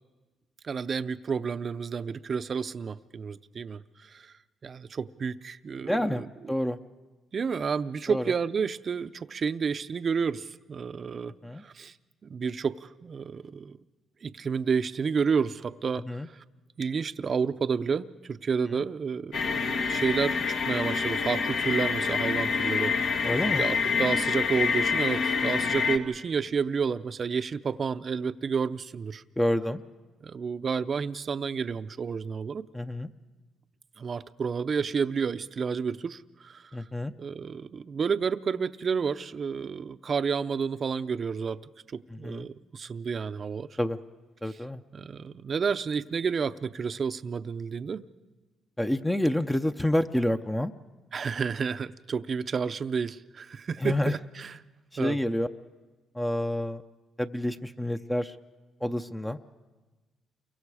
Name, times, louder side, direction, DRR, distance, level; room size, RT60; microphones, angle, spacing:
voice 1, 0.6-4.3 4.6-6.3 7.3-11.3 11.6-11.9 12.2-13.8 14.2-16.4 16.8-23.2 23.6-29.2 30.2-32.6 34.0-36.7 37.2-41.6 41.9-43.7 44.9-48.0 51.1-54.6 55.0-55.2, right 6 dB, 45° right, 12 dB, 0.6 m, -30 dB
voice 2, 5.9-6.8 8.1-8.3 11.4-11.6 16.1-16.3 18.7-18.8 23.2-23.7 29.4-29.8 32.7-33.1 36.7-37.1 42.1-42.5 43.8-44.0 44.4-44.8 48.8-50.7 53.8-54.1 54.9-55.5 56.1-56.8 57.2-58.4 58.8-59.4, left 1 dB, 10° left, 7 dB, 0.6 m, -28 dB
sound 1, 19.3-26.0, left 5 dB, 75° left, 1.5 m, -27 dB
29.0 x 23.5 x 4.9 m, 1.2 s
cardioid pair, 90°, 0 cm